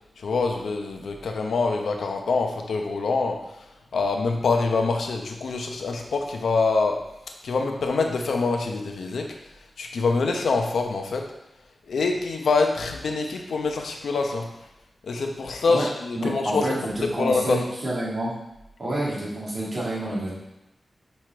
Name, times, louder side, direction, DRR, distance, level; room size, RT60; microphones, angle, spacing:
voice 1, 0.2-7.0 7.4-9.3 9.8-11.3 11.9-14.5 15.0-16.7 17.2-17.8, left 4 dB, 90° left, 3 dB, 0.8 m, -25 dB
voice 2, 16.2-18.3 18.8-20.3, right 1 dB, 35° right, -7 dB, 2.4 m, -28 dB
5.6 x 4.8 x 4.5 m, 0.90 s
wide cardioid pair, 160°, 0 cm